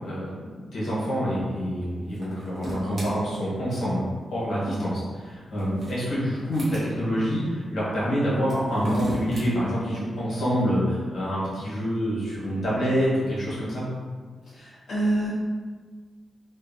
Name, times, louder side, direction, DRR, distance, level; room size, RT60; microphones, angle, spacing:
voice 1, 0.0-4.0 4.3-4.9 5.2-13.9, equal, 60° left, -8 dB, 1.0 m, -26 dB
sound 1, 2.1-3.1 5.3-6.9 8.4-9.5, equal, 40° right, 0.7 m, -36 dB
voice 2, 14.4-15.3, right 1 dB, 40° left, -8 dB, 0.4 m, -27 dB
2.6 x 2.1 x 2.6 m, 1.5 s
wide cardioid pair, 175°, 0 cm